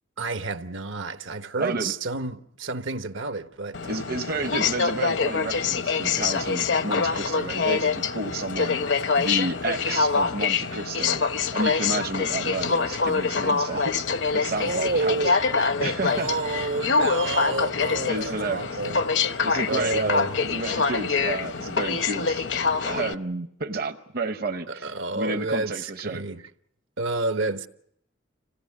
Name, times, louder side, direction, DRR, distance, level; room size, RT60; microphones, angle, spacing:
voice 1, 0.2-4.0 14.6-15.4 16.1-20.4 24.7-26.4 27.0-27.7, right 3 dB, 75° right, 1.1 m, -30 dB
voice 2, 1.6-1.9 3.9-8.8 9.1-11.2 11.5-14.1 14.3-15.4 15.8-16.3 18.1-18.8 19.4-22.4 22.8-26.2, right 3 dB, 50° right, 0.8 m, -31 dB
Aircraft, 3.7-23.1, left 5 dB, 65° left, 0.9 m, -25 dB
26.5 x 17.0 x 8.3 m
head